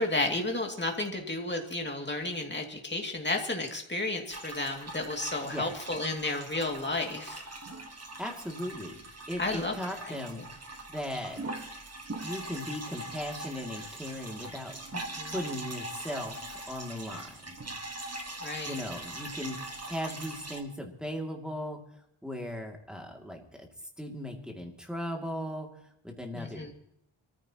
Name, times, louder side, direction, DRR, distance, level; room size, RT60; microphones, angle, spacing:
voice 1, 0.0-7.4 9.4-10.2 14.9-15.4 18.4-18.8 26.3-26.7, left 2 dB, 20° left, 2 dB, 2.6 m, -32 dB
sound 1, 4.3-20.6, right 2 dB, 30° right, 1.7 m, -42 dB
voice 2, 7.9-9.0 9.3-10.5 10.9-11.7 12.2-14.8 15.3-16.4 16.7-17.5 18.7-21.8 22.2-23.7 24.0-26.7, equal, ahead, 1 dB, 2.6 m, -38 dB
26.0 x 14.5 x 3.0 m, 0.75 s
wide cardioid pair, 130°, 50 cm